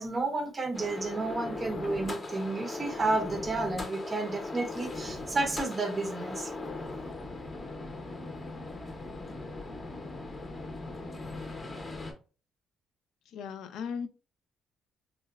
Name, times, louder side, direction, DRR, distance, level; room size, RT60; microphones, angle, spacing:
voice 1, 0.0-6.5, right 3 dB, 25° right, 0.5 m, -31 dB
sound 1, 0.7-12.1, left 2 dB, 25° left, 0.6 m, -39 dB
voice 2, 13.3-14.1, left 6 dB, 75° left, 0.4 m, -36 dB
3.7 x 2.1 x 2.3 m
cardioid pair, 115°, 0 cm